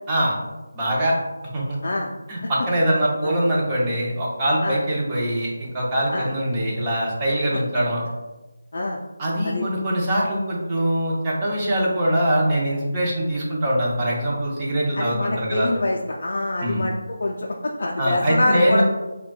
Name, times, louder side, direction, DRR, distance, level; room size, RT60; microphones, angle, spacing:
voice 1, 0.7-1.2 1.5-1.8 2.3-8.0 9.2-15.7 16.6-16.8 18.0-18.8, right 1 dB, 15° right, -5 dB, 0.6 m, -23 dB
voice 2, 14.9-16.9 17.2-18.8, left 2 dB, 50° left, -2 dB, 0.4 m, -25 dB
5.4 x 2.2 x 2.3 m, 1.1 s
figure-of-eight pair, 170°, 0 cm